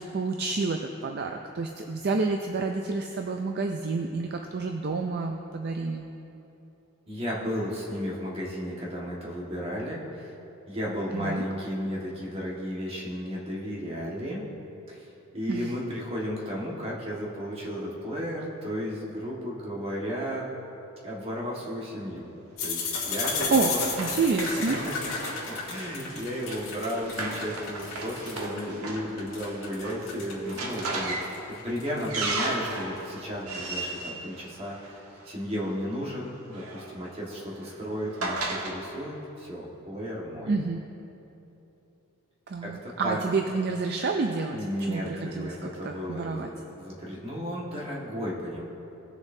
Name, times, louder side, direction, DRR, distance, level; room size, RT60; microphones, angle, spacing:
voice 1, 0.0-6.1 11.1-11.4 15.5-15.7 23.5-23.7 24.0-24.8 40.5-40.8 42.5-46.5, right 4 dB, 45° right, 4 dB, 0.4 m, -29 dB
voice 2, 7.1-10.4 10.7-14.4 14.9-20.5 21.0-22.3 22.6-23.8 24.5-24.7 25.2-25.3 25.7-31.2 31.5-40.5 42.6-43.2 44.5-48.6, equal, 25° right, -5 dB, 1.6 m, -34 dB
sound 1, 22.6-28.6 29.0-32.8, left 4 dB, 65° left, 2.3 m, -33 dB
Run, 22.6-35.3 36.3-38.7, right 2 dB, 85° right, 1.3 m, -36 dB
18.0 x 6.9 x 2.7 m, 3.0 s
head